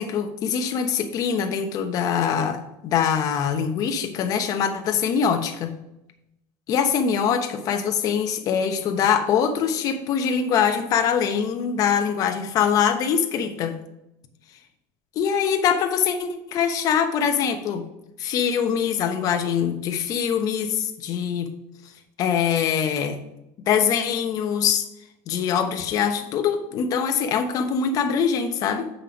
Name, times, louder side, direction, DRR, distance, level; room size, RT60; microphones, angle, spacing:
voice 1, 0.0-5.7 6.7-13.8 15.2-17.8 18.2-21.5 22.2-23.2 23.6-24.9 25.3-28.9, left 7 dB, 45° left, 6 dB, 1.0 m, -23 dB
7.6 x 5.5 x 5.2 m, 0.87 s
cardioid pair, 145°, 9 cm